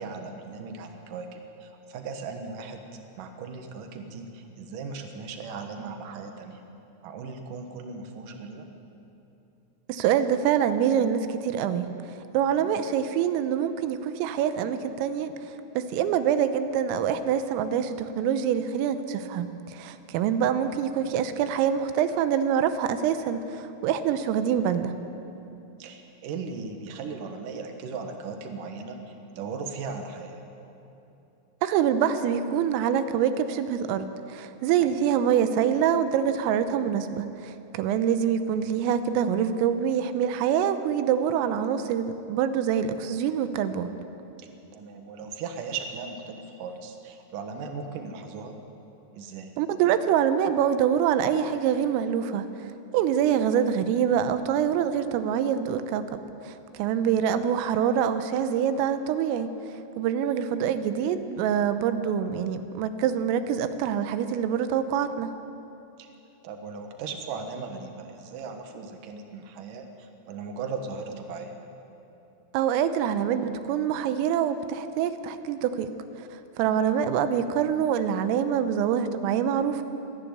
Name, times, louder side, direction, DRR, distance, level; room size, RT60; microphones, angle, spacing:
voice 1, 0.0-2.8 3.2-6.6 7.0-8.7 12.6-12.8 20.2-20.5 24.5-24.7 25.8-30.4 34.8-35.1 38.5-38.7 44.4-48.6 49.1-49.5 57.0-57.5 66.0-66.1 66.4-71.6 76.6-76.9, right 4 dB, 70° right, 5 dB, 2.0 m, -38 dB
voice 2, 9.9-11.9 12.3-15.3 15.8-25.0 31.6-43.9 49.6-52.5 52.9-56.1 56.4-59.5 60.0-65.3 72.5-75.9 76.2-79.8, right 8 dB, 90° right, 10 dB, 3.4 m, -25 dB
26.5 x 11.0 x 9.5 m, 2.9 s
omnidirectional pair, 6.0 m